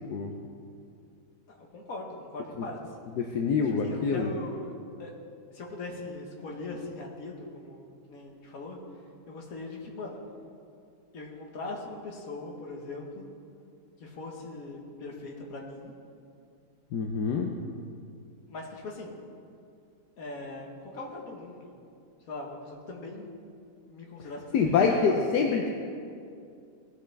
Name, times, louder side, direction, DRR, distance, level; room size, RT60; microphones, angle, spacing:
voice 1, 1.5-2.8 3.6-4.7 5.0-5.1 5.5-8.8 9.3-10.2 11.1-13.2 14.0-15.9 18.5-19.2 20.2-21.7 22.3-23.3 23.9-24.6 24.9-25.2, left 2 dB, 60° left, 0 dB, 1.7 m, -40 dB
voice 2, 3.2-4.3 16.9-17.5 24.5-25.7, left 5 dB, 80° left, 2 dB, 1.2 m, -25 dB
17.5 x 6.5 x 3.4 m, 2.4 s
omnidirectional pair, 1.8 m